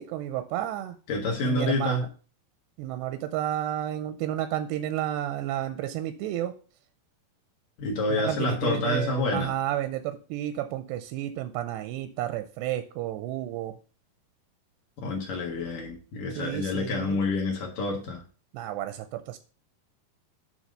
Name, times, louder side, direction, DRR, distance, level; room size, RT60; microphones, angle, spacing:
voice 1, 0.0-1.0 1.4-2.1 2.8-6.5 8.1-13.7 16.4-17.2 18.5-19.4, right 12 dB, 85° right, 9 dB, 2.6 m, -31 dB
voice 2, 1.1-2.1 7.8-9.6 15.0-18.2, left 2 dB, 60° left, 0 dB, 2.6 m, -28 dB
9.3 x 3.4 x 6.4 m, 0.38 s
omnidirectional pair, 4.9 m